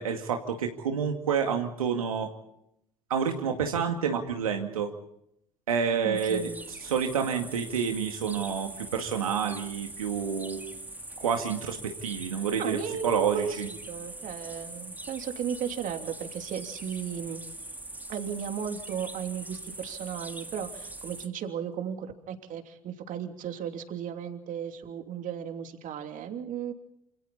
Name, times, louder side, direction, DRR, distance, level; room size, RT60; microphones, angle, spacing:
voice 1, 0.0-2.3 3.1-4.9 5.7-6.5 6.8-10.6 11.2-12.8 13.0-13.7, right 7 dB, 85° right, 4 dB, 2.2 m, -28 dB
voice 2, 6.0-6.6 12.6-17.4 18.1-26.7, right 8 dB, 50° right, 5 dB, 3.1 m, -35 dB
sound 1, 6.2-21.3, right 2 dB, 10° right, 2.4 m, -42 dB
28.0 x 27.5 x 4.2 m, 0.76 s
hypercardioid pair, 70°, 18 cm